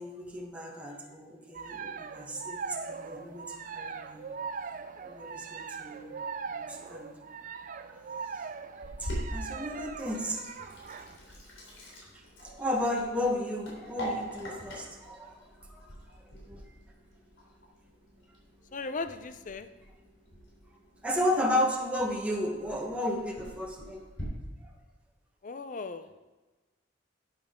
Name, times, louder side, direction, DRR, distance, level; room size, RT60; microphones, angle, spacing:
voice 1, 0.0-4.2 5.0-6.1 6.5-7.1 7.9-8.0 8.3-8.5 9.0-10.7 12.1-15.4 15.7-15.9 16.5-16.6 21.0-24.1 24.6-24.7, left 1 dB, 5° right, -1 dB, 1.2 m, -33 dB
sound 1, 1.5-11.2, right 5 dB, 45° right, 0.5 m, -40 dB
Sink (filling or washing), 8.8-24.2, equal, 90° left, 3.5 m, -44 dB
voice 2, 18.7-19.7 25.4-26.1, left 3 dB, 45° left, 10 dB, 0.6 m, -37 dB
11.0 x 8.9 x 3.7 m, 1.2 s
head